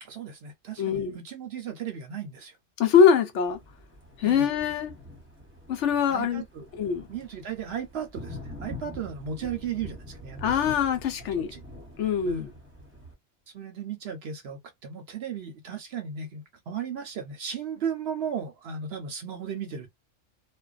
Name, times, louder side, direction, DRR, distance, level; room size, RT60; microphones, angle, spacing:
voice 1, 0.0-2.5 4.2-4.5 6.1-6.7 7.1-10.5 11.5-11.6 12.2-12.5 13.5-19.9, right 7 dB, 60° right, 0.7 m, -35 dB
voice 2, 0.8-1.2 2.8-3.6 4.2-4.9 5.7-6.4 6.7-7.0 10.4-11.5 12.0-12.5, left 7 dB, 75° left, 0.9 m, -23 dB
Thunder, 3.5-13.1, left 1 dB, 10° right, 0.8 m, -44 dB
2.5 x 2.2 x 2.3 m
omnidirectional pair, 1.3 m